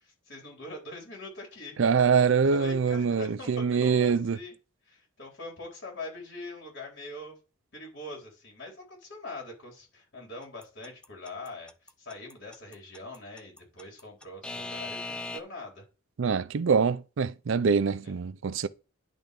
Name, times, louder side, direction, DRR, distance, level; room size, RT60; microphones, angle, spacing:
voice 1, 0.0-1.8 2.3-4.5 4.9-7.4 7.7-15.8 18.0-18.1, left 2 dB, 60° left, 4.0 m, -43 dB
voice 2, 1.8-4.4 16.2-18.7, right 5 dB, 65° right, 0.4 m, -24 dB
Alarm / Clock, 10.6-15.4, left 2 dB, 5° left, 0.4 m, -38 dB
10.5 x 3.5 x 5.3 m
head